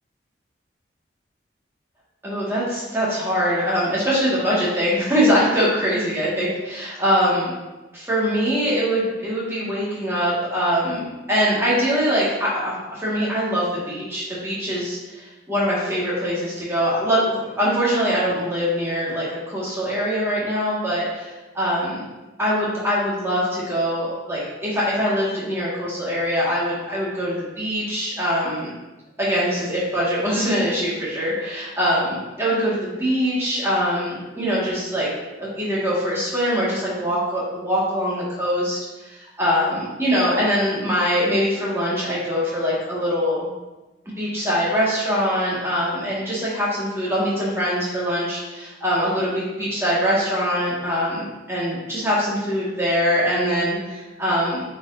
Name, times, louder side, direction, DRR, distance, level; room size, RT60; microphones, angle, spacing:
voice 1, 2.2-7.5 7.9-22.0 22.4-28.7 29.2-35.1 35.4-43.5 44.2-54.6, equal, 15° right, -7 dB, 1.9 m, -23 dB
7.5 x 4.6 x 2.7 m, 1.1 s
head